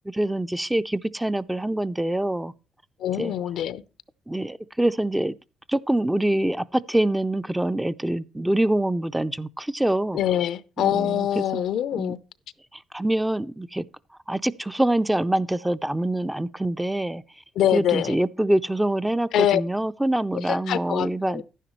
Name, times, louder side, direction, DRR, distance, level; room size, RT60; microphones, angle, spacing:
voice 1, 0.1-2.5 3.2-3.3 4.3-5.3 5.7-10.2 10.8-11.6 11.9-12.1 12.9-13.8 14.3-17.2 17.7-21.4, right 1 dB, 10° right, 0.4 m, -25 dB
voice 2, 3.0-3.8 10.1-12.2 17.6-18.2 19.3-19.6 20.3-21.4, left 11 dB, 80° left, 0.6 m, -24 dB
10.5 x 10.0 x 3.1 m
cardioid pair, 90°, 0 cm